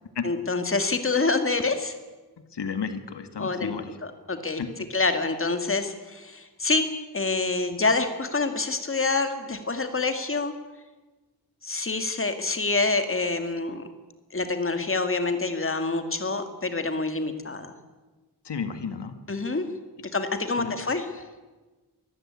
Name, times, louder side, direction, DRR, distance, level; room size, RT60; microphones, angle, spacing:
voice 1, 0.2-1.9 3.4-3.7 4.3-4.6 4.9-6.9 7.1-10.5 11.6-13.9 14.3-17.7 19.3-19.6 20.1-21.1, left 3 dB, 30° left, 8 dB, 2.2 m, -26 dB
voice 2, 2.4-4.0 4.6-4.7 18.4-19.2 20.6-20.8, left 6 dB, 90° left, 9 dB, 1.8 m, -32 dB
23.5 x 15.0 x 9.8 m, 1.2 s
wide cardioid pair, 125°, 40 cm